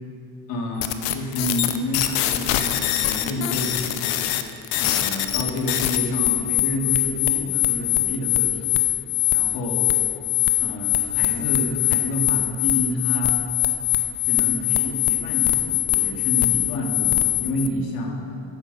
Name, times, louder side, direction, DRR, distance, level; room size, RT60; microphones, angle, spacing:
voice 1, 0.5-4.3 4.8-8.8 9.3-9.9 10.6-13.4 14.2-18.2, left 1 dB, 60° left, 1 dB, 2.1 m, -29 dB
sound 1, 0.8-17.7, left 14 dB, 85° left, 0.8 m, -22 dB
11.0 x 9.0 x 6.8 m, 2.6 s
cardioid pair, 160°, 41 cm